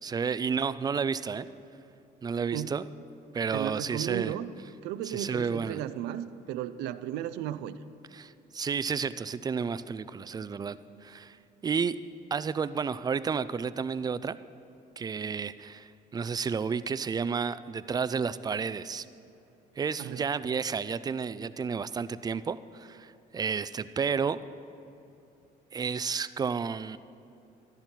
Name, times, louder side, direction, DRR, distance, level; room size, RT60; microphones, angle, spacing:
voice 1, 0.0-1.5 2.2-2.9 3.3-4.3 5.0-5.8 8.1-11.4 11.6-12.0 12.3-14.4 15.0-19.1 19.8-24.4 25.7-27.0, right 6 dB, 25° right, 15 dB, 0.3 m, -31 dB
voice 2, 3.5-4.5 4.8-7.8 20.0-20.2, right 12 dB, 90° right, 13 dB, 0.5 m, -34 dB
14.0 x 11.5 x 4.5 m, 2.8 s
cardioid pair, 110°, 17 cm